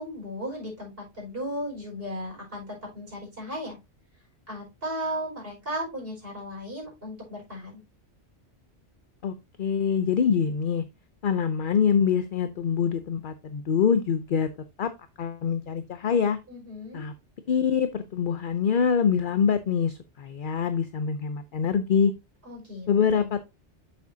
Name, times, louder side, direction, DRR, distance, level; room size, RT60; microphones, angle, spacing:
voice 1, 0.0-3.8 4.5-7.8 16.5-17.0 22.4-22.9 23.1-23.3, equal, 55° right, 5.0 m, -35 dB
voice 2, 9.2-10.8 11.2-14.5 14.8-14.9 15.2-16.4 16.9-17.1 17.5-22.1 22.9-23.4, left 7 dB, 55° left, 0.7 m, -25 dB
7.9 x 7.5 x 2.7 m
omnidirectional pair, 1.2 m